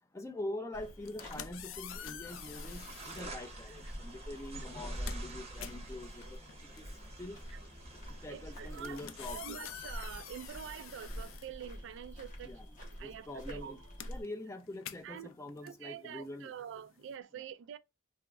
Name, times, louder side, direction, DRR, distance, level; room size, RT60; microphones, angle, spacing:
voice 1, 0.1-6.4 6.8-6.9 7.2-7.4 8.2-9.8 12.4-16.5 17.3-17.4, left 1 dB, 15° left, 0.5 m, -44 dB
sound 1, 0.7-14.2, equal, 40° left, 1.2 m, -46 dB
sound 2, 0.9-3.3 4.2-4.4 4.7-12.2 12.5-17.1, left 10 dB, 80° left, 0.4 m, -49 dB
sound 3, 2.3-11.4, right 3 dB, 35° right, 0.7 m, -51 dB
voice 2, 8.3-12.5 12.8-13.8 15.0-15.3 15.6-17.8, right 8 dB, 65° right, 0.3 m, -46 dB
3.5 x 2.0 x 3.4 m
head